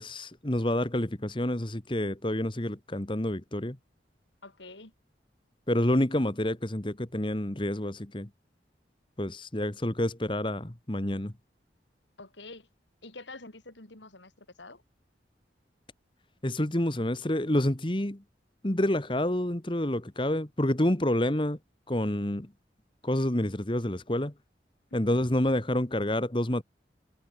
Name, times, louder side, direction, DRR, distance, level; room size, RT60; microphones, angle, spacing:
voice 1, 0.0-3.8 5.7-8.3 9.2-11.3 16.4-18.2 18.6-21.6 21.9-22.5 23.0-24.3 24.9-26.6, left 1 dB, 25° left, 1.4 m, -28 dB
voice 2, 4.4-4.9 12.2-12.7 13.0-14.8 25.0-25.1, left 3 dB, 90° left, 4.6 m, -47 dB
head